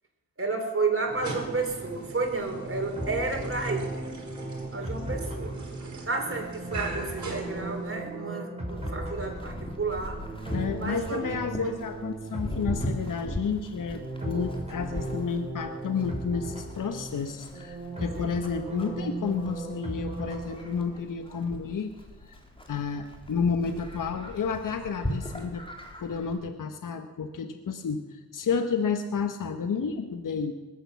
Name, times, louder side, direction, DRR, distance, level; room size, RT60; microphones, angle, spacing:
voice 1, 0.4-4.0 4.7-5.5 6.0-10.2 10.8-11.2 11.6-11.8 18.2-18.3, right 3 dB, 40° right, 2 dB, 4.1 m, -31 dB
sound 1, 1.0-8.2, right 3 dB, 55° right, 4.1 m, -40 dB
sound 2, 1.4-21.1, right 2 dB, 20° right, 6.9 m, -37 dB
Livestock farm animals working animals, 8.7-26.4, equal, 15° left, 3.2 m, -40 dB
voice 2, 10.5-21.9 22.3-22.4 22.7-25.6 26.0-30.5, left 5 dB, 65° left, 7 dB, 1.2 m, -31 dB
20.0 x 8.7 x 7.1 m, 1.2 s
cardioid pair, 50°, 35 cm